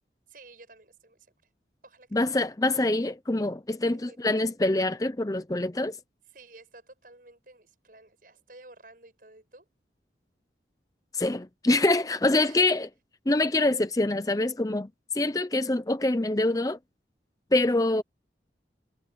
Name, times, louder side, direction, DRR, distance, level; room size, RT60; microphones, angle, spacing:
voice 1, 0.3-1.3 1.8-2.1 3.9-4.2 6.3-9.7 12.4-12.8, right 2 dB, 50° right, 7.6 m, -52 dB
voice 2, 2.1-6.0 11.1-12.9 13.3-14.9 15.1-16.8 17.5-18.0, left 2 dB, 20° left, 0.6 m, -25 dB
head